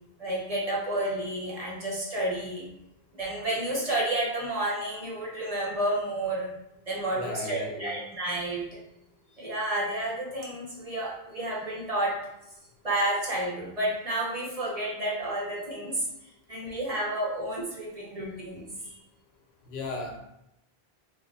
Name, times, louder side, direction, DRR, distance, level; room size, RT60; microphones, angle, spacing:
voice 1, 0.2-2.7 3.1-6.5 6.9-8.7 9.4-12.1 12.8-16.0 16.5-19.0, right 1 dB, 40° right, -5 dB, 0.8 m, -30 dB
voice 2, 7.1-8.0 19.7-20.2, left 2 dB, 80° left, 1 dB, 0.9 m, -35 dB
3.1 x 2.0 x 3.8 m, 0.84 s
omnidirectional pair, 1.0 m